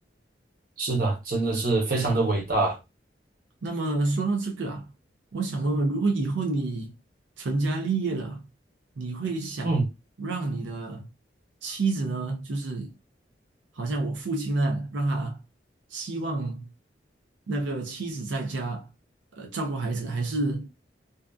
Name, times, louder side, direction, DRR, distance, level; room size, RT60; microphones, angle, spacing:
voice 1, 0.8-2.8 9.6-9.8, right 3 dB, 50° right, 0.9 m, -24 dB
voice 2, 3.6-4.9 5.3-6.9 7.4-8.4 9.0-9.8 10.2-11.1 11.6-12.9 13.7-15.4 15.9-16.7 17.5-18.9 19.3-20.7, right 3 dB, 90° right, 0.5 m, -28 dB
2.6 x 2.4 x 2.3 m
head